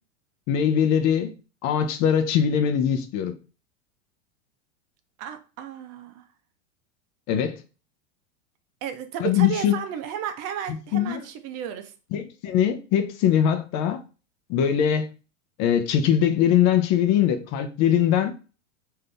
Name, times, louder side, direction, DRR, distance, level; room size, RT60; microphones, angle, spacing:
voice 1, 0.5-1.3 1.6-3.3 7.3-7.6 9.2-9.7 10.9-11.2 12.1-14.0 14.5-15.1 15.6-18.3, left 9 dB, 45° left, 0.7 m, -21 dB
voice 2, 5.2-6.3 8.8-11.9, right 9 dB, 40° right, 0.7 m, -33 dB
3.7 x 2.8 x 3.3 m
hypercardioid pair, 105°, 38 cm